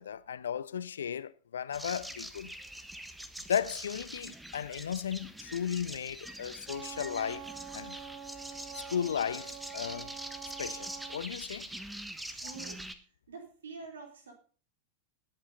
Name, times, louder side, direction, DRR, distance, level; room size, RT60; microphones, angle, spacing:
voice 1, 0.0-2.5 3.5-7.5 7.7-8.0 8.7-10.1 10.6-11.7, left 8 dB, 65° left, 0.7 m, -35 dB
sound 1, 1.7-12.9, right 1 dB, 5° right, 1.3 m, -44 dB
Wind instrument woodwind instrument, 6.7-11.3, right 9 dB, 25° right, 1.9 m, -46 dB
voice 2, 12.3-12.8 13.3-14.3, right 4 dB, 65° right, 3.8 m, -46 dB
18.5 x 8.6 x 4.0 m
figure-of-eight pair, 90°, 0 cm